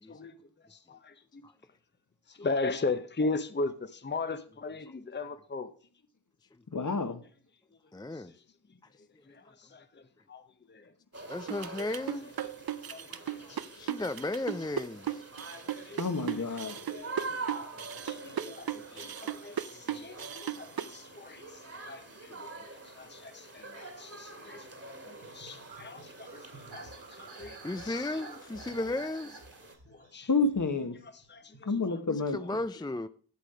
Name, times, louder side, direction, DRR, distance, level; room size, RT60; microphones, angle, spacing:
voice 1, 0.7-1.4 2.3-5.7 9.3-10.0 10.3-10.4 10.7-10.9 12.9-13.7 15.5-16.0 16.7-17.4 18.0-21.4 21.8-24.7 25.0-27.6 27.8-28.0 29.9-30.3 31.3-32.0, left 3 dB, 30° left, 0.8 m, -38 dB
voice 2, 6.7-7.2 16.0-16.8 30.3-31.0 31.7-32.4, left 3 dB, 50° left, 1.3 m, -29 dB
voice 3, 7.9-8.3 11.3-12.3 13.1-15.2 19.9-20.0 27.6-29.4 32.1-33.1, left 2 dB, 10° left, 0.4 m, -35 dB
sound 1, 11.1-29.8, right 3 dB, 40° right, 2.0 m, -46 dB
sound 2, 11.5-21.0, right 10 dB, 65° right, 0.6 m, -36 dB
sound 3, 25.2-31.6, right 3 dB, 85° right, 2.3 m, -51 dB
8.4 x 7.5 x 4.9 m
cardioid pair, 45°, 38 cm